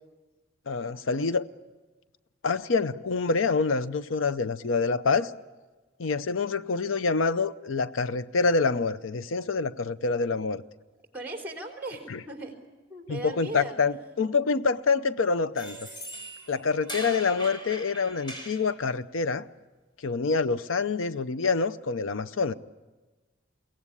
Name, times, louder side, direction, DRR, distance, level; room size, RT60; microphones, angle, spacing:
voice 1, 0.7-1.4 2.4-5.3 6.0-10.6 13.1-15.8 16.5-19.5 20.0-22.5, left 4 dB, 80° left, 14 dB, 0.6 m, -26 dB
voice 2, 11.1-12.6 12.9-14.1 17.2-17.4, right 1 dB, 10° right, 2 dB, 3.7 m, -39 dB
sound 1, 15.6-18.7, right 1 dB, 25° left, 4.6 m, -40 dB
23.0 x 17.5 x 9.9 m, 1.3 s
head